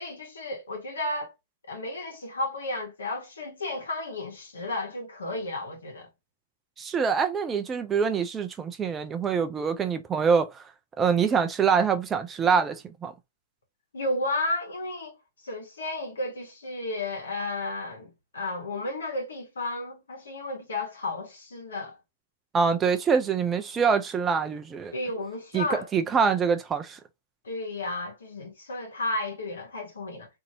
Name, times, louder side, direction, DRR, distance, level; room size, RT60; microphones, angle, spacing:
voice 1, 0.0-1.3 1.7-6.1 13.9-15.2 15.4-22.0 24.9-25.9 27.4-30.3, left 2 dB, 80° left, 1.2 m, -33 dB
voice 2, 6.8-10.7 11.0-13.1 22.5-24.9 25.5-25.7 25.9-27.0, right 6 dB, 20° right, 0.4 m, -25 dB
2.7 x 2.6 x 2.7 m
hypercardioid pair, 115°, 0 cm